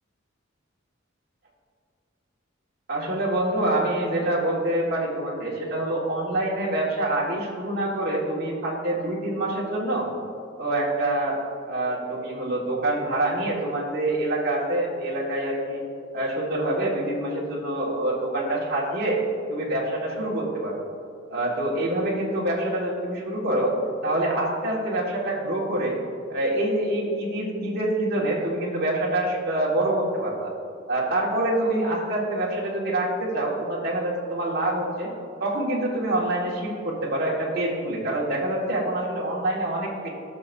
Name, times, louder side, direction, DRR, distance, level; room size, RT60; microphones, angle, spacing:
voice 1, 2.9-10.1 10.6-11.4 11.7-15.8 16.1-19.2 19.5-20.8 21.3-23.7 24.0-26.0 26.3-30.5 30.9-35.1 35.4-40.1, right 1 dB, 50° right, -5 dB, 1.7 m, -26 dB
15.5 x 6.7 x 2.6 m, 2.5 s
head